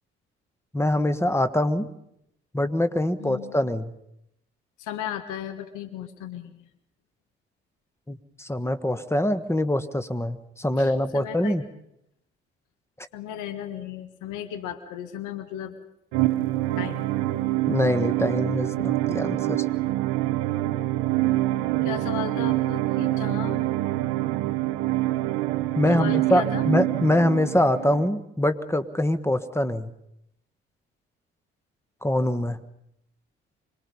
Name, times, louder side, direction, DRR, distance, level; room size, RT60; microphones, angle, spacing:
voice 1, 0.7-1.9 2.5-3.9 8.1-11.6 13.0-13.1 17.7-19.6 25.8-29.9 32.0-32.6, left 1 dB, 10° left, 12 dB, 1.4 m, -24 dB
voice 2, 3.2-3.5 4.8-6.6 10.8-11.6 13.1-15.8 16.8-17.1 21.8-23.7 25.9-26.7, left 9 dB, 75° left, 10 dB, 1.6 m, -35 dB
sound 1, 16.1-28.1, right 16 dB, 80° right, 0.9 m, -26 dB
25.5 x 20.5 x 5.5 m, 0.78 s
hypercardioid pair, 45°, 31 cm